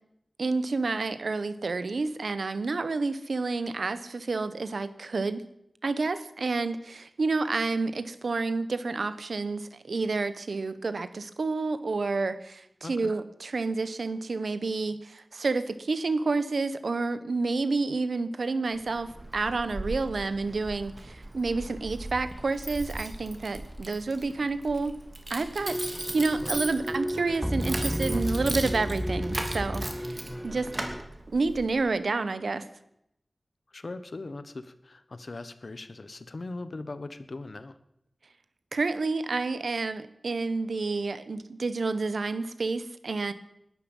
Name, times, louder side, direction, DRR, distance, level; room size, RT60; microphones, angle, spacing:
voice 1, 0.4-5.4 5.8-24.9 25.3-30.7 31.3-32.6 38.7-43.3, right 3 dB, 85° right, 13 dB, 1.0 m, -29 dB
voice 2, 12.8-13.1 33.7-37.8, left 2 dB, 65° left, 12 dB, 1.3 m, -40 dB
Keys jangling, 18.7-31.8, right 1 dB, 35° right, 2.8 m, -38 dB
sound 1, 25.6-31.0, equal, ahead, 0.6 m, -32 dB
20.5 x 12.5 x 5.5 m, 0.80 s
wide cardioid pair, 55°, 0 cm